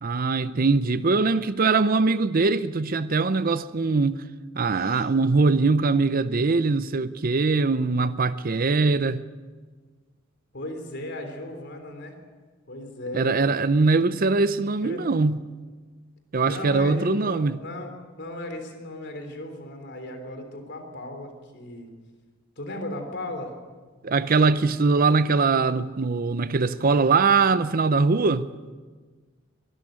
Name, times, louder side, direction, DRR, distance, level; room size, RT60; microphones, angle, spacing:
voice 1, 0.0-4.2 4.5-9.2 13.1-15.4 16.3-17.6 24.0-28.4, right 4 dB, 45° right, 0.6 m, -22 dB
Gasp, 4.6-5.2, left 2 dB, 75° left, 1.2 m, -44 dB
voice 2, 10.5-12.1 12.7-13.6 14.8-15.1 16.4-21.9 22.6-23.5, left 1 dB, 55° left, 3.6 m, -36 dB
23.0 x 13.5 x 8.8 m
head